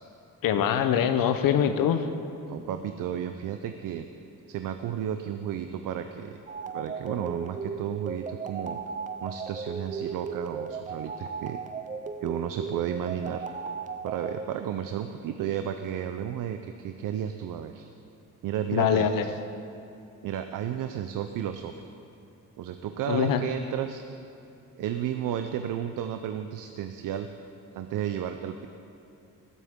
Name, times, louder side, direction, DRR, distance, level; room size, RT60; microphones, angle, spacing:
voice 1, 0.4-2.1 18.7-19.3 23.1-23.4, left 9 dB, 80° left, 9 dB, 0.8 m, -23 dB
voice 2, 2.5-4.1 4.5-6.4 6.7-8.8 9.2-11.6 12.2-13.5 14.0-17.9 18.4-19.1 20.2-21.9 22.6-24.0 24.8-27.3 27.7-28.7, right 9 dB, 70° right, 8 dB, 0.6 m, -33 dB
sound 1, 6.5-14.4, right 5 dB, 25° right, 0.4 m, -36 dB
19.5 x 8.3 x 3.6 m, 2.7 s
cardioid pair, 150°, 33 cm